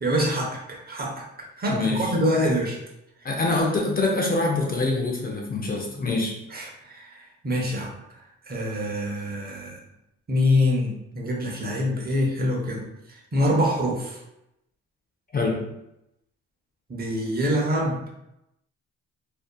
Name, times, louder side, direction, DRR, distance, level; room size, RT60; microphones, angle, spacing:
voice 1, 0.0-1.2 1.6-2.8 5.9-6.0 6.5-7.9 8.5-9.8 10.3-12.8 13.1-14.2 16.9-18.0, left 1 dB, 30° right, -2 dB, 0.7 m, -25 dB
voice 2, 1.7-2.1 3.2-6.4 15.3-15.7, left 2 dB, 30° left, -1 dB, 0.5 m, -25 dB
2.6 x 2.3 x 2.2 m, 0.84 s
cardioid pair, 90°, 30 cm